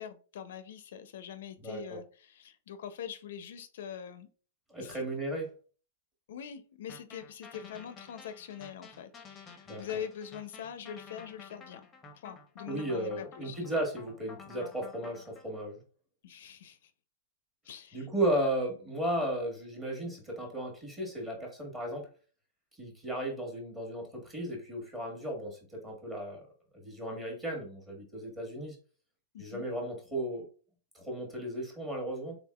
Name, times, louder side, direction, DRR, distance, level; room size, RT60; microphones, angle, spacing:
voice 1, 0.0-4.3 4.8-5.0 6.3-11.9 12.2-13.6 16.2-16.9 17.6-18.1 29.3-29.7, left 9 dB, 65° left, 11 dB, 0.4 m, -43 dB
voice 2, 1.6-2.0 4.7-5.5 9.7-9.8 12.7-15.8 17.9-22.1 22.8-26.5 26.7-28.8 29.4-30.5 30.9-32.4, right 1 dB, 10° right, -1 dB, 1.2 m, -35 dB
sound 1, 6.9-15.4, left 5 dB, 15° left, 0.6 m, -51 dB
3.6 x 3.5 x 2.2 m, 0.39 s
hypercardioid pair, 155°, 0 cm